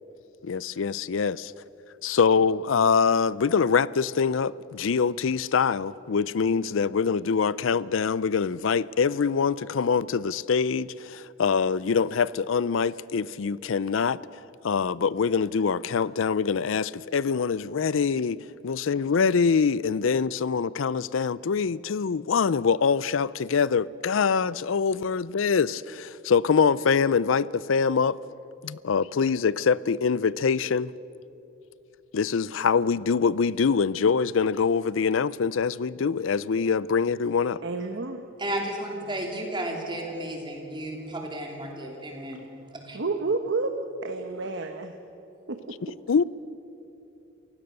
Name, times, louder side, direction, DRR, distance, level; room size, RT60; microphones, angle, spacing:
voice 1, 0.4-1.5 2.0-14.2 14.6-28.2 28.6-30.9 32.1-37.6 45.8-46.2, left 5 dB, 70° left, 0.5 m, -24 dB
voice 2, 37.6-38.2 42.9-43.7 44.0-44.9 45.5-45.8, right 3 dB, 65° right, 1.0 m, -30 dB
voice 3, 38.4-42.4 42.7-43.0, right 1 dB, 25° right, 3.2 m, -33 dB
28.0 x 16.0 x 6.7 m
head